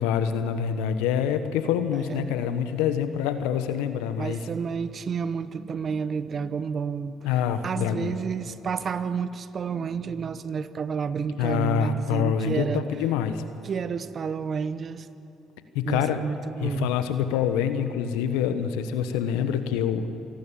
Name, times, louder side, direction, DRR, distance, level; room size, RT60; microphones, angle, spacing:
voice 1, 0.0-4.4 7.2-8.1 11.4-13.4 15.7-16.2 16.6-20.1, left 8 dB, 80° left, 10 dB, 1.2 m, -26 dB
voice 2, 1.9-2.3 4.2-7.2 7.6-12.8 13.6-15.1 15.8-16.9, right 6 dB, 45° right, 14 dB, 1.0 m, -30 dB
26.5 x 12.0 x 8.8 m, 3.0 s
hypercardioid pair, 60°, 0 cm